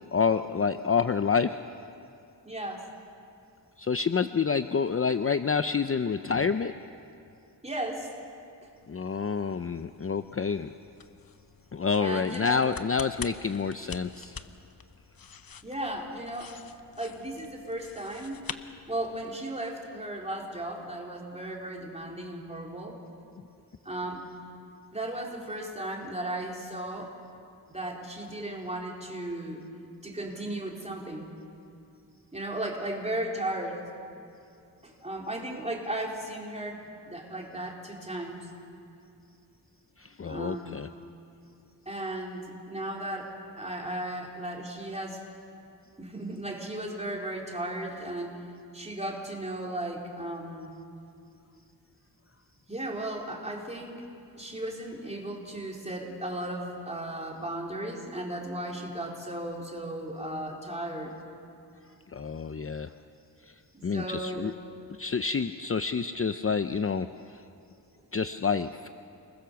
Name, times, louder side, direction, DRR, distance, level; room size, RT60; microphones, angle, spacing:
voice 1, 0.1-1.6 3.8-6.7 8.9-10.7 11.7-14.3 40.0-40.9 62.1-62.9 63.8-64.5 65.0-67.1 67.3-67.4 68.1-68.9, left 5 dB, 35° left, 10 dB, 0.6 m, -28 dB
voice 2, 2.4-2.8 7.6-8.1 12.0-12.7 15.6-16.5 17.0-18.4 18.9-23.0 23.8-24.3 24.9-27.1 27.7-29.6 30.0-31.3 32.3-33.8 34.8-38.5 40.2-40.8 41.9-45.2 46.0-48.4 48.7-50.7 52.7-54.0 54.4-61.1 63.7-64.4, right 1 dB, 15° right, -1 dB, 4.3 m, -35 dB
sound 1, 8.6-19.4, left 6 dB, 55° left, 1.0 m, -46 dB
29.5 x 21.0 x 7.0 m, 2.5 s
wide cardioid pair, 95°, 41 cm